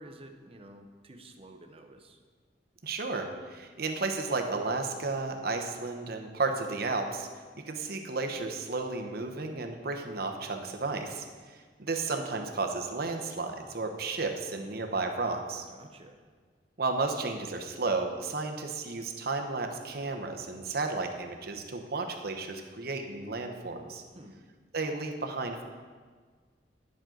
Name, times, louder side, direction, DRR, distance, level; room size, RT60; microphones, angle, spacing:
voice 1, 0.0-2.2 15.7-16.2 24.1-24.4, right 1 dB, 35° right, 4 dB, 0.8 m, -50 dB
voice 2, 2.8-7.3 7.7-15.6 16.8-24.0 24.7-25.6, right 3 dB, 60° right, 4 dB, 0.9 m, -33 dB
10.5 x 7.5 x 3.9 m, 1.5 s
head